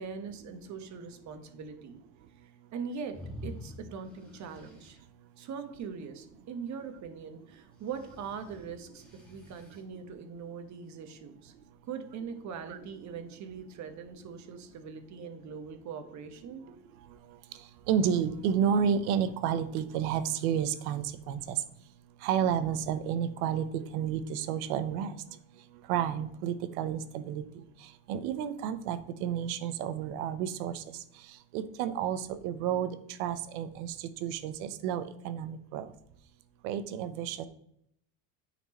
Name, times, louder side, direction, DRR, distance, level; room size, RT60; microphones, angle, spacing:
voice 1, 0.0-2.0 2.4-5.0 5.4-11.5 11.8-16.8, right 6 dB, 40° right, 8 dB, 1.1 m, -42 dB
sound 1, 3.1-5.0 7.8-9.8, left 1 dB, ahead, 1.8 m, -47 dB
voice 2, 17.9-21.6 22.2-25.1 25.9-27.4 28.1-30.8 31.5-33.9 34.2-35.9 36.6-37.5, right 8 dB, 90° right, 12 dB, 0.9 m, -31 dB
9.0 x 4.5 x 4.2 m, 0.73 s
cardioid pair, 140°, 43 cm